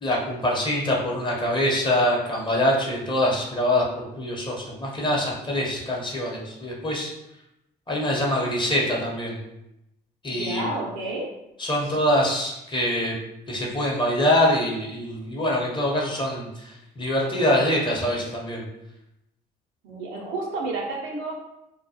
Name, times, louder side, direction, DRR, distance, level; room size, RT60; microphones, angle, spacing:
voice 1, 0.0-7.1 7.9-9.4 10.2-10.6 11.6-13.2 13.5-18.6, left 1 dB, 25° left, -3 dB, 0.8 m, -24 dB
voice 2, 10.3-11.3 11.8-12.0 19.8-21.3, right 2 dB, 75° right, -1 dB, 0.6 m, -31 dB
2.2 x 2.1 x 2.7 m, 0.87 s
hypercardioid pair, 55°, 21 cm